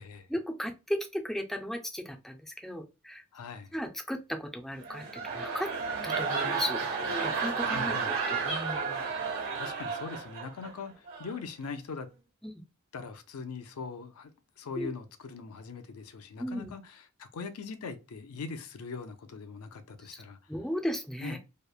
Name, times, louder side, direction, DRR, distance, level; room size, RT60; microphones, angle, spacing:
voice 1, 0.3-3.2 3.7-5.7 6.0-6.8 7.2-9.0 12.4-12.6 14.8-14.9 16.4-16.7 20.1-20.2 20.5-21.4, equal, ahead, 0.3 m, -36 dB
voice 2, 3.3-3.7 7.6-8.1 9.5-12.1 12.9-14.3 14.6-20.4 21.2-21.4, left 4 dB, 90° left, 0.4 m, -41 dB
sound 1, 4.7-10.7 11.1-11.4, right 5 dB, 70° right, 1.2 m, -32 dB
2.9 x 2.0 x 2.3 m
head